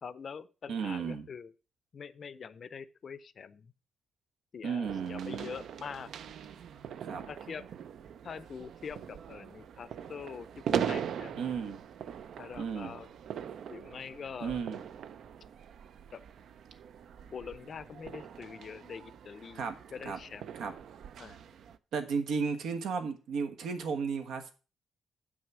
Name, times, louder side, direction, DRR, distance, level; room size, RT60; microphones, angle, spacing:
voice 1, 0.0-1.5 1.9-3.7 4.5-6.1 7.3-7.7 8.2-11.5 12.4-13.1 13.7-14.6 16.1-16.2 17.3-19.7 19.9-20.5 21.2-21.4, left 6 dB, 40° left, 16 dB, 0.5 m, -44 dB
voice 2, 0.7-1.2 4.6-5.5 7.0-7.3 11.4-11.8 12.6-12.9 14.4-14.8 19.5-19.7 20.0-20.2 20.6-20.7 21.9-24.5, right 6 dB, 85° right, 7 dB, 1.4 m, -34 dB
sound 1, 4.8-21.8, right 8 dB, 65° right, 0.5 m, -41 dB
7.5 x 6.3 x 6.1 m, 0.34 s
wide cardioid pair, 165°, 0 cm